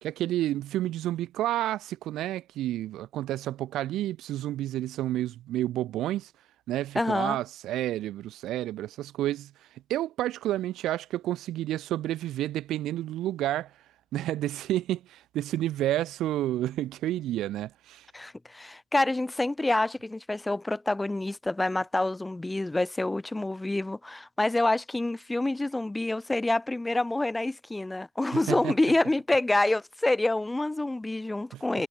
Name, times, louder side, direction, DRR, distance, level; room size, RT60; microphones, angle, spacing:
voice 1, 0.0-6.3 6.7-9.5 9.9-13.7 14.1-18.1 28.3-28.7 31.5-31.6, right 14 dB, 60° right, 2.1 m, -30 dB
voice 2, 7.0-7.4 18.1-31.9, left 2 dB, 15° left, 2.2 m, -27 dB
figure-of-eight pair, 45°, 0 cm